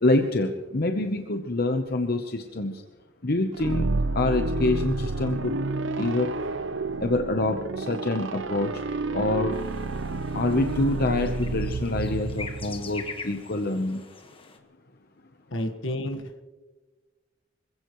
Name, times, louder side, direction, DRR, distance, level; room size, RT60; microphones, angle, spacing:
voice 1, 0.0-2.8 3.2-3.9 4.1-5.6 6.0-6.3 7.0-8.8 9.1-9.6 10.3-14.0, left 2 dB, 50° left, 5 dB, 0.9 m, -26 dB
sound 1, 3.5-13.3, right 3 dB, 75° right, 0.7 m, -30 dB
sound 2, 9.5-14.6, left 4 dB, 30° left, 1.4 m, -43 dB
voice 2, 15.5-16.4, left 1 dB, 85° left, 7 dB, 1.5 m, -31 dB
25.5 x 16.0 x 3.1 m, 1.3 s
head